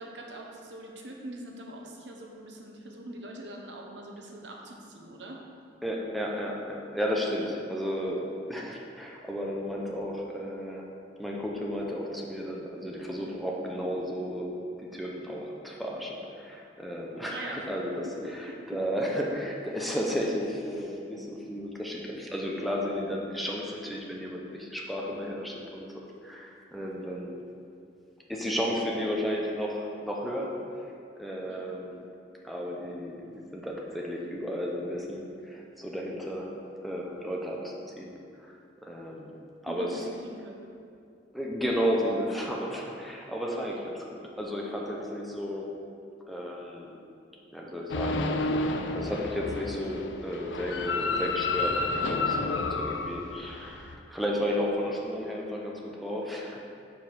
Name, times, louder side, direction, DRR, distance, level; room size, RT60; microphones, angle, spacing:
voice 1, 0.0-5.4 17.3-17.7 18.2-18.8 31.5-31.6 39.7-40.6, right 1 dB, 80° right, 0 dB, 0.9 m, -43 dB
voice 2, 5.8-10.8 11.2-14.5 14.8-25.9 26.2-27.4 28.3-30.8 31.2-32.0 32.4-36.5 36.8-38.1 38.4-38.5 38.8-39.3 39.6-40.1 41.3-45.7 46.3-47.0 47.5-48.2 48.5-56.6, equal, ahead, -2 dB, 0.6 m, -33 dB
sound 1, 47.9-53.9, left 3 dB, 90° left, 0.5 m, -30 dB
5.3 x 4.8 x 5.9 m, 2.5 s
head